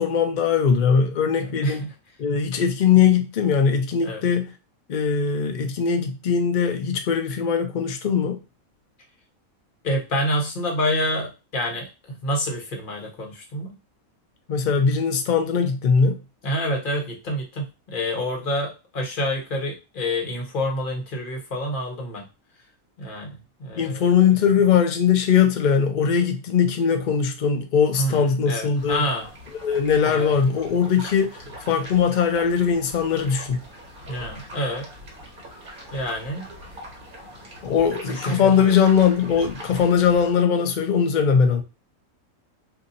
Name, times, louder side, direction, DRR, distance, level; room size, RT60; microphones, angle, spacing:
voice 1, 0.0-1.8 2.2-4.5 4.9-8.4 14.5-16.2 23.8-29.0 29.6-33.6 37.6-41.6, left 7 dB, 90° left, 0.4 m, -20 dB
voice 2, 1.4-1.9 4.0-4.2 9.8-13.7 16.4-22.3 23.0-24.3 28.0-29.3 30.0-30.3 34.1-34.9 35.9-36.4 38.1-38.8, equal, 40° left, 1.0 m, -28 dB
sound 1, 28.7-40.3, equal, 40° right, 1.2 m, -41 dB
2.7 x 2.6 x 3.9 m
omnidirectional pair, 1.5 m